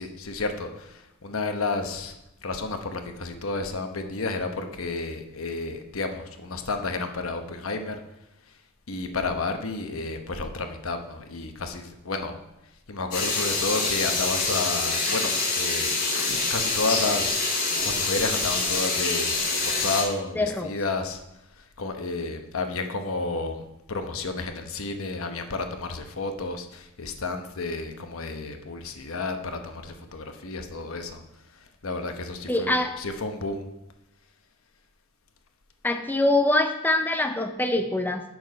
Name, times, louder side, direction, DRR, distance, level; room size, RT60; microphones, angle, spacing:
voice 1, 0.0-2.2 2.4-8.0 8.5-8.6 8.9-12.4 12.9-21.2 21.5-31.2 31.5-33.7, left 3 dB, 85° left, 6 dB, 0.9 m, -31 dB
sound 1, 13.1-20.0, left 3 dB, 50° left, 3.3 m, -26 dB
voice 2, 20.4-20.7 32.5-32.9 35.8-38.2, left 2 dB, 10° left, 5 dB, 0.5 m, -24 dB
7.2 x 6.0 x 5.3 m, 0.88 s
head